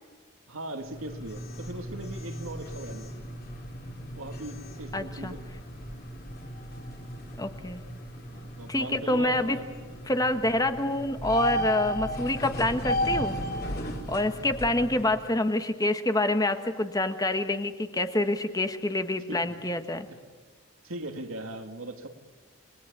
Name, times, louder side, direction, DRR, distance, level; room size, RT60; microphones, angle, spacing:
voice 1, 0.5-3.3 4.2-5.4 5.9-6.0 8.3-9.7 14.2-14.3 19.3-19.5 20.8-22.1, right 1 dB, 75° right, 6 dB, 2.3 m, -39 dB
sound 1, 0.8-15.2, equal, 45° left, 3.6 m, -35 dB
voice 2, 4.9-5.3 7.4-7.8 8.7-9.6 10.1-13.4 14.1-20.1, left 1 dB, 15° left, 8 dB, 1.3 m, -27 dB
29.5 x 20.5 x 8.7 m, 1.4 s
head